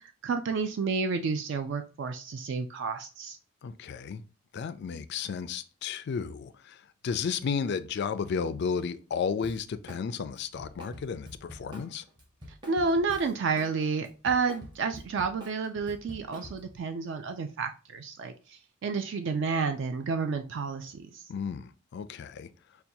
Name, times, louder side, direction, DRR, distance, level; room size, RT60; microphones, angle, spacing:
voice 1, 0.2-3.4 12.7-21.2, right 4 dB, 55° right, 0.3 m, -30 dB
voice 2, 3.6-4.2 4.5-12.0 21.3-22.5, left 6 dB, 50° left, 0.3 m, -33 dB
Drum kit, 9.4-10.1 10.3-13.7 14.0-16.8, equal, 20° right, 0.7 m, -46 dB
5.6 x 2.3 x 2.6 m
head